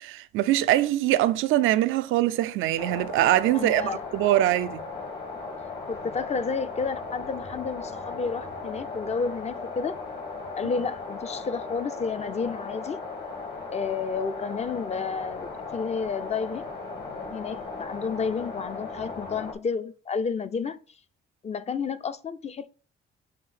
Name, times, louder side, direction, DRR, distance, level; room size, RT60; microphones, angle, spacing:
voice 1, 0.0-4.8, right 14 dB, 90° right, 0.4 m, -23 dB
sound 1, 2.8-19.5, left 4 dB, 55° left, 2.2 m, -37 dB
voice 2, 3.5-4.0 5.9-10.0 10.6-13.0 13.7-16.7 17.3-20.8 21.4-22.7, left 5 dB, 35° left, 0.6 m, -31 dB
7.2 x 2.7 x 4.8 m
cardioid pair, 90°, 20 cm